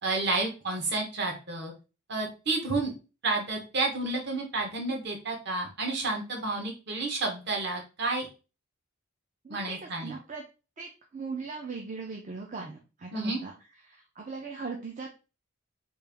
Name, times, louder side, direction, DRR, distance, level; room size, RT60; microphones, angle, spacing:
voice 1, 0.0-1.7 2.1-2.9 3.2-8.3 9.5-10.1 13.1-13.4, right 3 dB, 50° right, 1 dB, 1.0 m, -30 dB
voice 2, 9.4-10.4 10.8-13.5 13.8-15.1, right 4 dB, 35° right, 0 dB, 0.5 m, -39 dB
3.3 x 2.4 x 3.4 m, 0.32 s
head